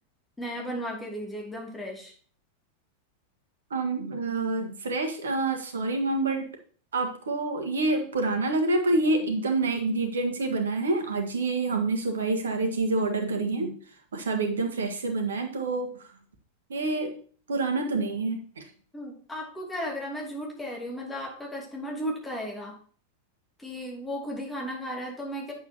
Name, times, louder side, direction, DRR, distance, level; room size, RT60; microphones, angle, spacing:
voice 1, 0.4-2.1 18.9-22.8 23.6-25.5, equal, 10° left, -1 dB, 2.7 m, -35 dB
voice 2, 3.7-6.5 6.9-13.7 14.1-15.9 16.7-17.1 17.5-18.6, right 3 dB, 65° right, 4 dB, 1.6 m, -27 dB
8.7 x 7.1 x 3.0 m, 0.44 s
figure-of-eight pair, 90°, 0 cm